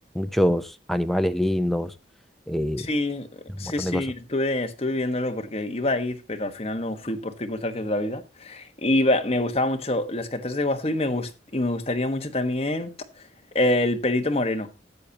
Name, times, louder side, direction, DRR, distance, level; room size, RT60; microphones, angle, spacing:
voice 1, 0.2-0.6 0.9-1.9 2.5-2.8 3.8-4.0, equal, ahead, 0.7 m, -23 dB
voice 2, 2.8-3.3 3.6-12.9 13.5-14.7, left 1 dB, 30° left, 1.4 m, -26 dB
13.5 x 8.6 x 2.9 m
head